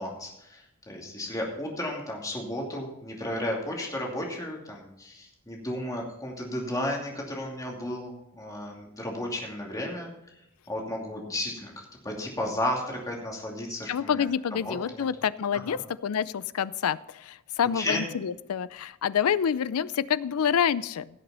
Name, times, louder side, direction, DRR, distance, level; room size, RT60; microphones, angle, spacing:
voice 1, 0.0-10.1 10.7-14.2 14.6-15.0 15.7-15.8 17.7-18.0, left 1 dB, 15° left, -1 dB, 2.6 m, -33 dB
voice 2, 13.9-21.1, left 8 dB, 80° left, 17 dB, 0.4 m, -27 dB
17.0 x 6.7 x 4.3 m, 0.86 s
head